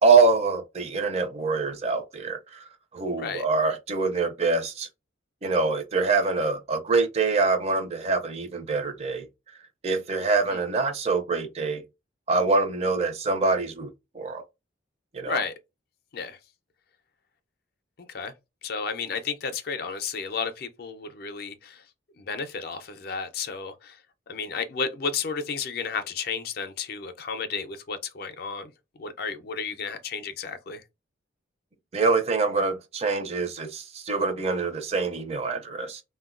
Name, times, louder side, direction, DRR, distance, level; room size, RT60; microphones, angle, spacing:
voice 1, 0.0-4.9 5.4-9.3 9.8-11.8 12.3-14.4 15.1-15.4 31.9-36.0, right 4 dB, 30° right, 0.4 m, -25 dB
voice 2, 15.2-15.5 16.1-16.4 18.1-18.3 18.6-21.8 22.2-24.0 24.3-28.7 29.0-30.8, left 5 dB, 50° left, 0.4 m, -32 dB
3.5 x 2.2 x 2.3 m
head